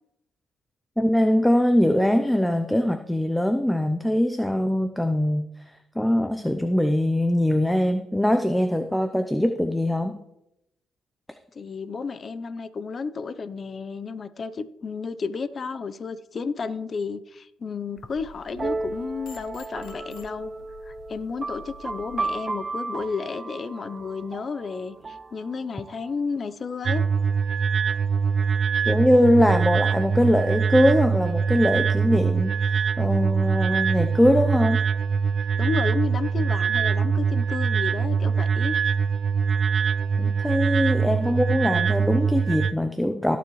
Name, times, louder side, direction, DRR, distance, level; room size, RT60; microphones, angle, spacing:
voice 1, 1.0-5.5 6.0-10.2 28.9-34.8 40.2-43.4, left 1 dB, 5° left, 8 dB, 0.6 m, -22 dB
voice 2, 11.5-20.5 20.9-27.0 35.6-38.7, left 5 dB, 45° left, 13 dB, 0.6 m, -32 dB
sound 1, 18.0-22.2, left 5 dB, 85° left, 1.2 m, -49 dB
sound 2, 18.6-26.1, right 3 dB, 30° right, 0.8 m, -34 dB
sound 3, 26.8-42.7, right 6 dB, 50° right, 0.4 m, -23 dB
17.5 x 7.0 x 3.1 m, 0.85 s
cardioid pair, 90°, 0 cm